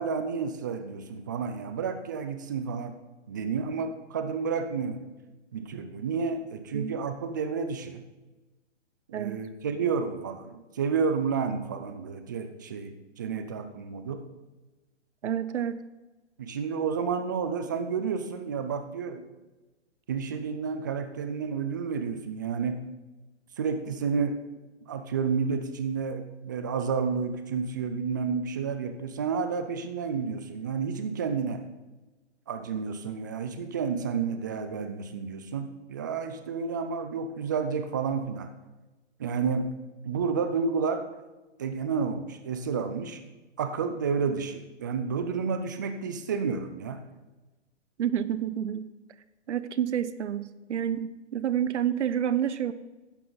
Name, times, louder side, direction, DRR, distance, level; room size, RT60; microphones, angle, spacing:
voice 1, 0.0-3.0 3.3-5.0 5.5-8.0 9.1-14.2 16.4-19.2 20.1-22.8 23.6-24.4 24.9-31.6 32.5-38.5 39.2-39.8 40.0-41.1 41.6-43.2 43.6-47.0, right 5 dB, 15° right, 9 dB, 0.4 m, -30 dB
voice 2, 15.2-15.8 48.0-48.9 49.5-52.7, right 9 dB, 70° right, 15 dB, 0.8 m, -29 dB
12.5 x 10.0 x 3.9 m, 1.1 s
hypercardioid pair, 150°, 36 cm